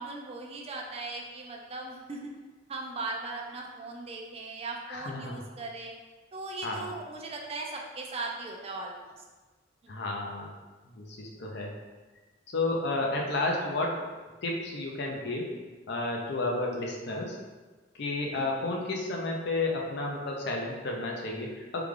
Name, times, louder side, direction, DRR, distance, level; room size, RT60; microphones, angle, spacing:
voice 1, 0.0-2.4 2.7-5.9 6.3-9.2 9.8-9.9 18.4-18.7, right 3 dB, 30° right, 0 dB, 0.4 m, -38 dB
voice 2, 4.9-5.4 6.6-6.9 9.9-10.5 10.9-11.7 12.5-14.0 14.4-15.5 15.9-17.4 18.0-21.8, left 2 dB, 60° left, 0 dB, 0.6 m, -31 dB
3.3 x 2.3 x 3.6 m, 1.3 s
head